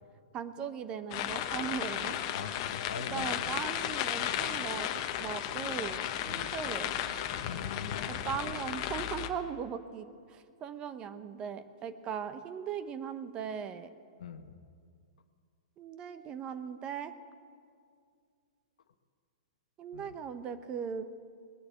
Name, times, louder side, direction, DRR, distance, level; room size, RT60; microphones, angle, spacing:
voice 1, 0.3-2.2 3.0-4.9 5.2-6.9 8.1-13.9 15.8-17.1 19.8-21.2, right 7 dB, 25° right, 11 dB, 0.8 m, -39 dB
sound 1, 1.1-9.3, left 11 dB, 45° left, 1.0 m, -34 dB
voice 2, 2.3-3.5 6.3-6.6 7.5-8.2 14.2-14.6 19.9-20.1, left 7 dB, 80° left, 9 dB, 1.1 m, -42 dB
20.0 x 6.8 x 8.8 m, 2.2 s
hypercardioid pair, 145°, 4 cm